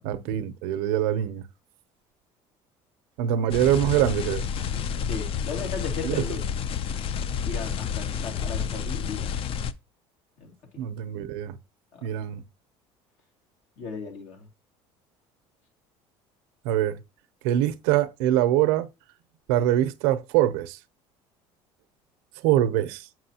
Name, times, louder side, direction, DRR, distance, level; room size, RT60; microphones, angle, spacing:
voice 1, 0.0-1.4 3.2-4.4 6.0-6.2 10.8-11.6 12.0-12.4 16.6-17.0 17.4-18.9 19.5-20.8 22.4-23.1, right 12 dB, 90° right, 0.6 m, -24 dB
sound 1, 3.5-9.7, left 7 dB, 50° left, 0.5 m, -30 dB
voice 2, 5.1-6.4 7.4-9.4 10.4-10.5 11.9-12.0 13.8-14.4, left 5 dB, 75° left, 2.6 m, -36 dB
7.4 x 6.1 x 2.8 m
supercardioid pair, 100°, 12 cm